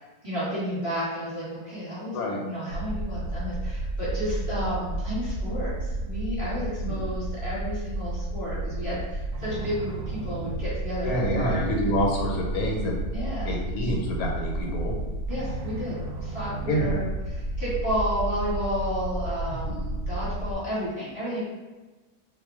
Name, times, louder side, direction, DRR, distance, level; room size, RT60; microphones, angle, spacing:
voice 1, 0.0-11.6 13.1-13.5 15.3-21.4, equal, 25° right, -10 dB, 1.0 m, -32 dB
sound 1, 2.7-20.6, right 1 dB, 70° right, 0.9 m, -32 dB
voice 2, 11.0-13.0 13.4-15.0 16.7-17.0 19.6-19.9, equal, 80° left, -1 dB, 1.1 m, -27 dB
2.3 x 2.2 x 3.5 m, 1.2 s
omnidirectional pair, 1.6 m